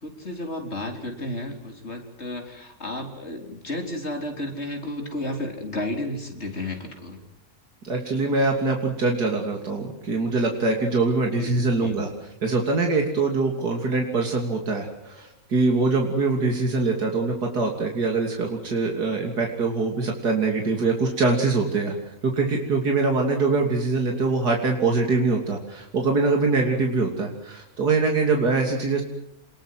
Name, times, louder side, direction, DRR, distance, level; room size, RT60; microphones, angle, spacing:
voice 1, 0.0-7.2 11.3-12.0, left 1 dB, 45° left, 3 dB, 4.5 m, -32 dB
voice 2, 7.8-21.9 22.2-29.0, right 3 dB, 85° right, 2 dB, 3.6 m, -23 dB
28.5 x 21.0 x 7.8 m, 0.82 s
omnidirectional pair, 1.7 m